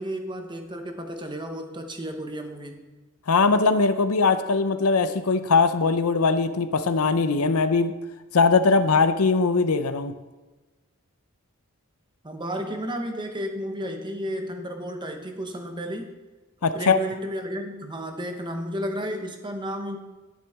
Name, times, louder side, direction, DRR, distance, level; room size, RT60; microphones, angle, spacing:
voice 1, 0.0-2.8 12.2-16.1 16.7-20.0, equal, 20° right, 5 dB, 1.0 m, -32 dB
voice 2, 3.3-7.9 8.3-10.1 16.6-17.0, left 4 dB, 75° left, 11 dB, 0.7 m, -21 dB
11.0 x 9.9 x 3.6 m, 1.2 s
head